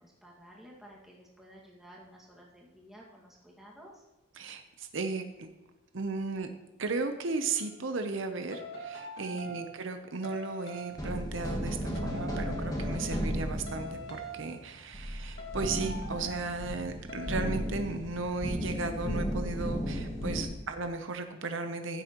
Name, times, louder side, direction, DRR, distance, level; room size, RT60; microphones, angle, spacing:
voice 1, 0.0-4.0 20.3-20.7, equal, ahead, -4 dB, 1.8 m, -53 dB
voice 2, 4.4-5.5 5.9-6.5 6.8-22.0, right 3 dB, 65° right, 7 dB, 0.7 m, -35 dB
sound 1, 7.5-7.7 8.5-9.8 10.2-11.0 11.9-13.4 13.7-14.6 15.4-16.6 17.1-17.7, right 1 dB, 50° left, 2.0 m, -43 dB
sound 2, 10.9-20.4, equal, 15° left, 1.3 m, -35 dB
15.0 x 8.0 x 3.0 m, 1.1 s
head